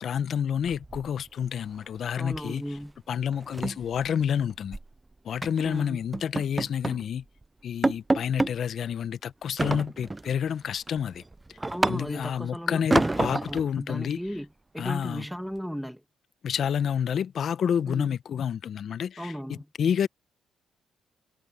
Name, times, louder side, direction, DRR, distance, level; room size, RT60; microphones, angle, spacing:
voice 1, 0.0-2.6 3.1-4.8 5.2-7.2 7.6-11.2 11.9-14.2 14.8-15.3 16.4-20.1, left 8 dB, 60° left, 0.9 m, -29 dB
sound 1, 0.7-1.5 1.8-2.0 2.3-2.5 2.8-2.9 3.3-4.9 5.4-5.7 6.1-7.1 7.4-7.5 7.8-8.6 9.6-10.3 10.8-12.4 12.9-13.7, right 2 dB, 15° right, 0.4 m, -28 dB
voice 2, 2.2-2.9 5.6-6.0 11.7-14.5 14.7-16.0 17.9-18.2 19.2-19.7, equal, ahead, 2.2 m, -36 dB
cardioid pair, 90°, 0 cm